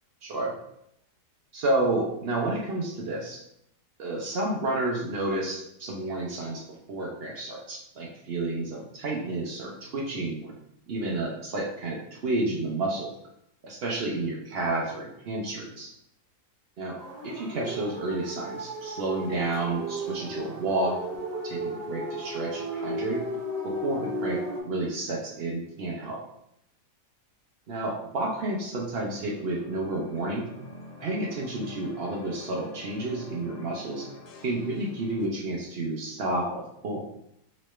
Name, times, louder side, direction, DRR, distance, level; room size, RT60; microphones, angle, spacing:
voice 1, 0.2-0.5 1.5-3.4 4.0-6.6 6.9-10.5 10.9-13.1 13.6-15.9 16.8-17.0 17.2-21.0 21.3-23.2 23.6-26.2 27.7-30.5 31.0-34.1 34.4-37.0, right 2 dB, 80° right, -1 dB, 0.5 m, -30 dB
sound 1, 17.0-24.6, equal, 30° right, 0.9 m, -35 dB
sound 2, 28.8-35.3, left 2 dB, 80° left, 0.6 m, -46 dB
3.1 x 3.0 x 3.1 m, 0.76 s
omnidirectional pair, 1.7 m